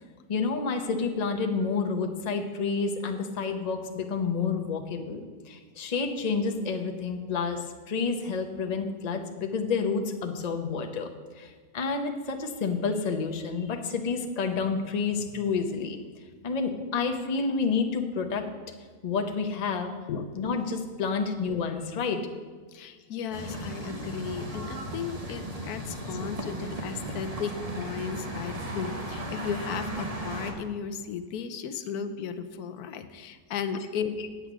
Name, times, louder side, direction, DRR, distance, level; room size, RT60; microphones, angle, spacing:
voice 1, 0.3-5.2 5.5-11.1 11.4-16.0 16.4-18.5 19.0-19.9 20.3-22.2 23.5-23.6 34.2-34.3, left 5 dB, 35° left, 4 dB, 0.7 m, -29 dB
voice 2, 20.1-20.4 22.7-34.1, left 6 dB, 75° left, 10 dB, 1.2 m, -35 dB
sound 1, 23.3-30.5, right 1 dB, 25° right, 1.1 m, -36 dB
8.6 x 8.1 x 6.1 m, 1.5 s
omnidirectional pair, 1.7 m